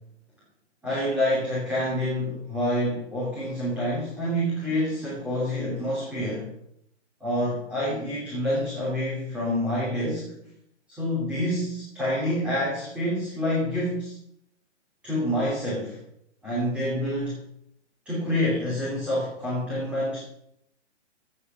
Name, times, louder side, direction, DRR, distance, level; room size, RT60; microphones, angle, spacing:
voice 1, 0.8-6.5 7.2-10.4 10.9-14.1 15.0-16.0 16.4-17.4 18.1-20.2, left 1 dB, 5° right, -8 dB, 2.7 m, -27 dB
15.5 x 8.7 x 5.5 m, 0.73 s
hypercardioid pair, 175°, 36 cm